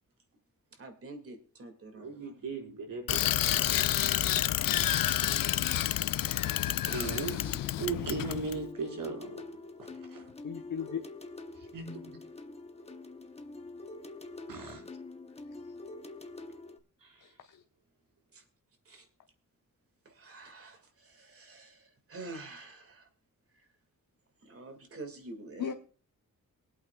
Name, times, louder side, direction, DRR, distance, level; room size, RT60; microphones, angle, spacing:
voice 1, 0.7-2.5 6.1-6.3 6.8-7.6 18.3-18.4 18.9-19.1 20.0-23.1 23.5-23.7 24.4-25.7, right 3 dB, 45° right, 2.2 m, -47 dB
voice 2, 1.9-3.9 4.6-5.1 6.9-9.3 9.8-10.3 11.6-12.2 14.5-14.8 17.0-17.3, right 4 dB, 80° right, 5.2 m, -39 dB
Bicycle, 3.1-8.6, left 13 dB, 90° left, 0.5 m, -29 dB
sound 1, 6.9-16.8, left 2 dB, 20° left, 0.9 m, -46 dB
voice 3, 10.4-11.0 15.5-15.7 17.2-17.6 25.6-25.7, left 8 dB, 65° left, 1.1 m, -38 dB
23.0 x 8.6 x 2.3 m
wide cardioid pair, 165°, 33 cm